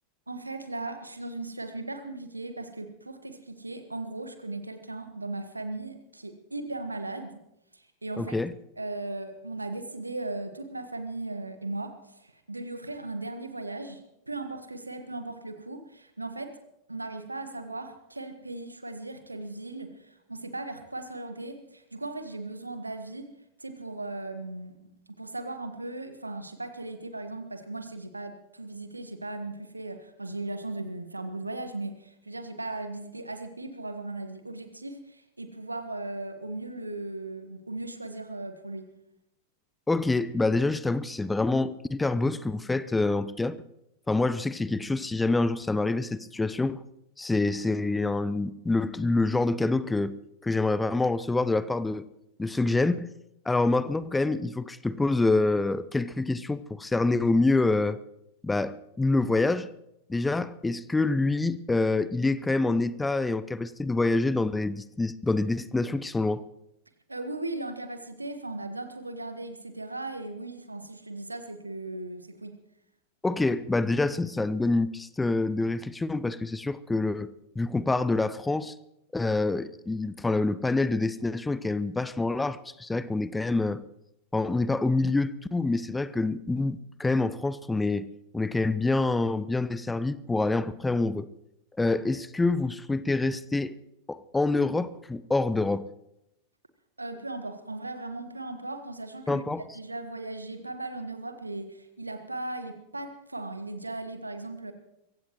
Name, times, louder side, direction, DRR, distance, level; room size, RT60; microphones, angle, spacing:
voice 1, 0.3-7.4 7.7-8.4 8.8-16.6 16.9-23.3 23.6-38.9 67.1-72.6 97.0-99.4 99.7-104.7, right 2 dB, 85° right, 1.4 m, -37 dB
voice 2, 8.2-8.5 39.9-43.6 44.1-46.8 47.2-50.2 50.4-52.1 52.4-53.1 53.5-58.0 58.4-59.7 60.1-66.4 73.2-78.7 79.1-83.8 84.3-88.1 88.3-91.3 91.8-93.7 94.1-95.9 99.3-99.6, left 2 dB, 10° left, 0.6 m, -26 dB
23.5 x 16.0 x 3.1 m
figure-of-eight pair, 90°, 0 cm